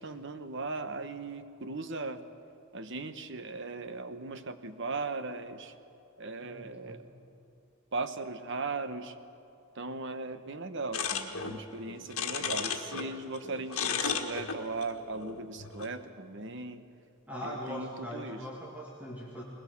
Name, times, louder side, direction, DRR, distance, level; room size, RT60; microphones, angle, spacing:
voice 1, 0.0-2.2 2.7-5.7 6.2-7.0 7.9-9.2 9.7-16.8 17.4-18.4, right 3 dB, 55° right, 10 dB, 1.1 m, -38 dB
voice 2, 6.4-7.0 17.3-19.4, equal, 5° right, -4 dB, 2.3 m, -41 dB
sound 1, 10.9-13.1 13.3-15.9, left 6 dB, 70° left, 1.6 m, -34 dB
21.5 x 21.0 x 7.1 m, 2.7 s
head